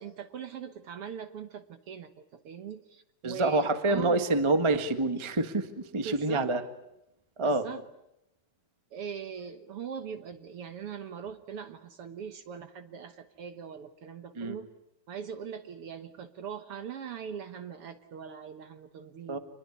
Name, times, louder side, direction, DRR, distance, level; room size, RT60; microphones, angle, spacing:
voice 1, 0.0-4.2 5.9-6.5 7.4-7.8 8.9-14.7 15.1-19.4, right 7 dB, 60° right, 9 dB, 1.7 m, -41 dB
voice 2, 3.2-5.7 5.9-6.6 7.4-7.6 14.4-14.6 19.3-19.4, right 2 dB, 25° right, 8 dB, 0.5 m, -26 dB
26.5 x 21.5 x 9.7 m, 0.85 s
omnidirectional pair, 3.7 m